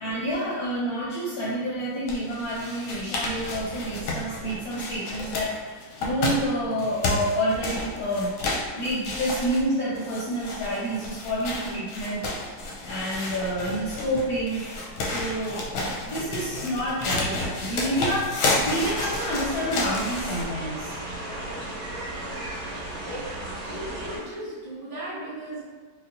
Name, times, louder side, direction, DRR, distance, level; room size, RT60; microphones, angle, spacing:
voice 1, 0.0-14.6 15.0-18.3 18.6-20.9, equal, 70° left, -6 dB, 0.9 m, -29 dB
sound 1, 2.1-20.5, left 2 dB, 90° left, 1.5 m, -31 dB
sound 2, 18.7-24.2, right 1 dB, 85° right, 2.5 m, -35 dB
voice 2, 21.1-25.6, right 1 dB, 60° right, -9 dB, 1.7 m, -39 dB
5.5 x 2.2 x 2.5 m, 1.4 s
omnidirectional pair, 2.2 m